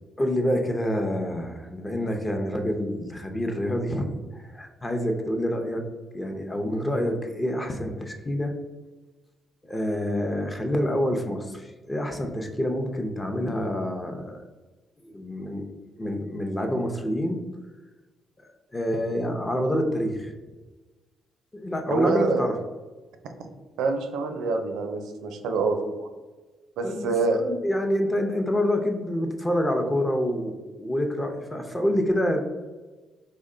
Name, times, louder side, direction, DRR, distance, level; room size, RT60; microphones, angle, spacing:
voice 1, 0.2-5.8 6.1-8.5 9.7-14.4 15.0-17.4 18.7-20.3 21.5-22.5 26.8-27.1 27.3-32.5, equal, 20° left, 4 dB, 0.5 m, -27 dB
voice 2, 21.9-22.4 23.2-23.3 23.8-26.1 26.8-27.4, right 3 dB, 85° right, 6 dB, 0.4 m, -26 dB
3.6 x 2.1 x 3.7 m, 1.3 s
cardioid pair, 90°, 0 cm